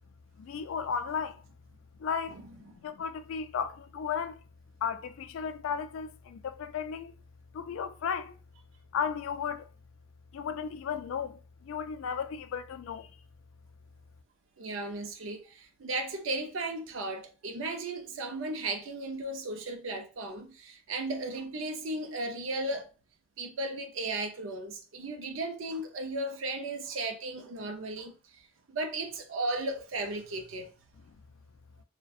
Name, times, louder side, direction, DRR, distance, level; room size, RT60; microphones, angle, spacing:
voice 1, 0.4-1.4 2.0-2.4 2.8-4.4 4.8-7.1 7.5-8.3 8.9-9.7 10.3-13.1, left 7 dB, 80° left, 0.3 m, -34 dB
voice 2, 14.6-22.9 23.4-28.4 28.7-30.7, right 2 dB, 70° right, 0.5 m, -35 dB
2.6 x 2.1 x 2.3 m
head